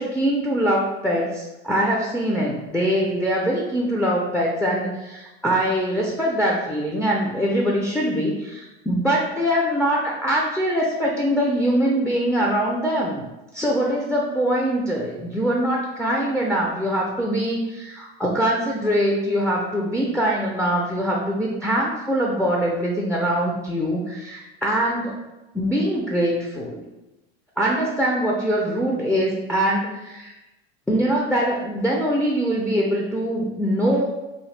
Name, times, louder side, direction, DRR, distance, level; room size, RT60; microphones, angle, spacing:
voice 1, 0.0-13.3 13.5-25.2 25.5-26.8 27.6-30.3 30.9-34.0, equal, 5° left, -3 dB, 0.4 m, -23 dB
2.8 x 2.3 x 3.2 m, 1.0 s
hypercardioid pair, 90°, 31 cm